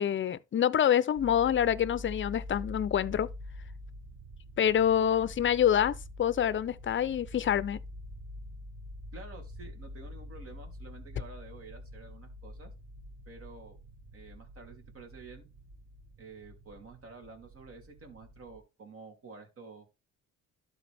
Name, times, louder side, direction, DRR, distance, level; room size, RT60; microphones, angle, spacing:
voice 1, 0.0-3.3 4.6-7.8, left 9 dB, 40° left, 0.6 m, -26 dB
sound 1, 1.2-18.6, left 1 dB, 65° right, 1.4 m, -46 dB
voice 2, 9.1-12.7 13.3-13.8 14.1-15.5 16.2-19.9, right 4 dB, 50° right, 3.3 m, -50 dB
12.0 x 4.2 x 3.5 m
cardioid pair, 90°, 30 cm